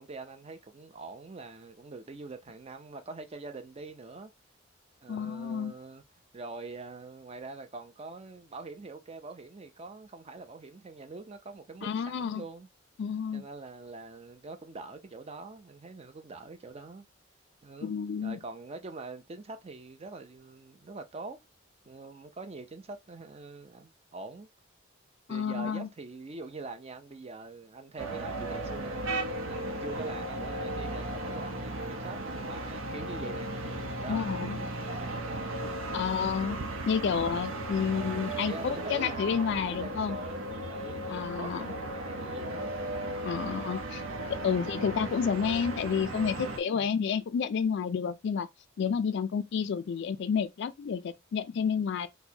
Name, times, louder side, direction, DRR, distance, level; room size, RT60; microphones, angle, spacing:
voice 1, 0.0-4.3 5.0-6.0 6.3-12.7 13.3-17.1 17.6-18.0 18.2-21.4 21.9-24.5 25.3-36.0 38.4-42.8 46.7-47.0, right 3 dB, 30° right, 0.5 m, -44 dB
voice 2, 5.1-5.7 11.8-12.4 13.0-13.4 17.8-18.4 25.3-25.9 34.1-34.6 35.9-36.6 36.9-40.2 41.1-41.7 43.2-44.0 44.3-48.5 48.8-52.1, left 6 dB, 60° left, 0.3 m, -30 dB
sound 1, 28.0-46.6, right 1 dB, 85° right, 0.7 m, -36 dB
4.3 x 2.1 x 2.8 m
head